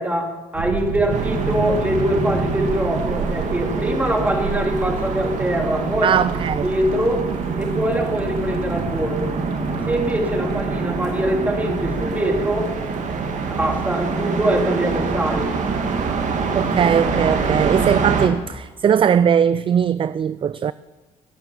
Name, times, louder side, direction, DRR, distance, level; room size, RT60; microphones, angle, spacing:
voice 1, 0.0-6.2 6.6-7.3 7.6-9.3 9.8-12.7 13.6-15.5, right 1 dB, 10° right, 3.2 m, -23 dB
sound 1, 0.5-10.6, right 4 dB, 90° right, 2.6 m, -31 dB
sound 2, 1.1-18.3, right 4 dB, 50° right, 2.6 m, -25 dB
voice 2, 6.0-6.7 16.6-20.7, right 8 dB, 35° right, 0.4 m, -19 dB
21.0 x 8.7 x 7.3 m
cardioid pair, 95°, 15 cm